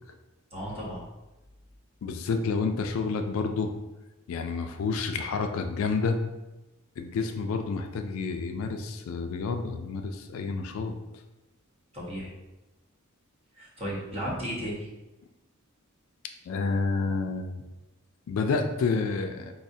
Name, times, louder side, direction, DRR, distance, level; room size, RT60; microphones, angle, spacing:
voice 1, 0.5-1.0 11.9-12.3 13.6-14.9, equal, 30° right, -5 dB, 0.9 m, -34 dB
voice 2, 2.0-3.7 4.3-6.2 7.0-11.0 16.5-17.6 18.3-19.5, left 4 dB, 70° left, 5 dB, 0.3 m, -29 dB
4.8 x 2.0 x 2.6 m, 1.0 s
head